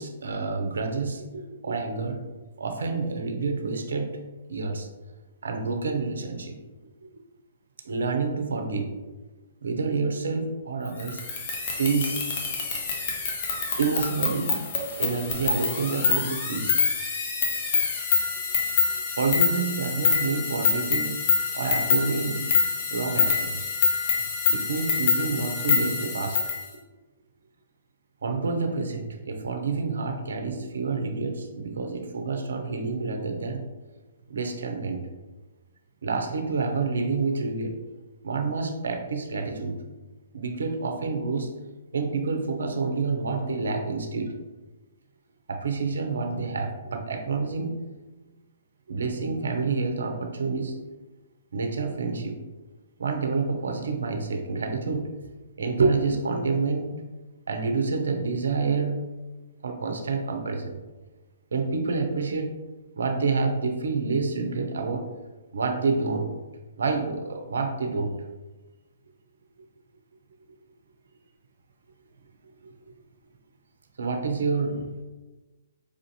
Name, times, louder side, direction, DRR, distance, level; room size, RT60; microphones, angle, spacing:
voice 1, 0.0-2.2 2.6-4.2 4.5-4.9 5.4-6.6 7.8-8.9 9.6-11.2 11.7-12.2 13.8-14.5 15.0-16.8 18.9-21.2 21.5-22.5 22.9-23.6 24.5-26.4 28.2-33.6 34.3-35.0 36.0-37.8 38.2-39.8 40.3-41.5 41.9-44.4 45.5-47.8 48.9-50.8 51.5-52.4 53.0-55.1 55.6-56.9 57.5-59.0 59.6-60.8 61.5-62.5 63.0-65.1 65.5-66.3 66.8-68.1 72.6-72.7 74.0-75.0, right 4 dB, 75° right, 4 dB, 0.6 m, -28 dB
sound 1, 11.0-26.6, left 5 dB, 45° left, 0.8 m, -26 dB
4.8 x 2.5 x 2.8 m, 1.2 s
hypercardioid pair, 130°, 0 cm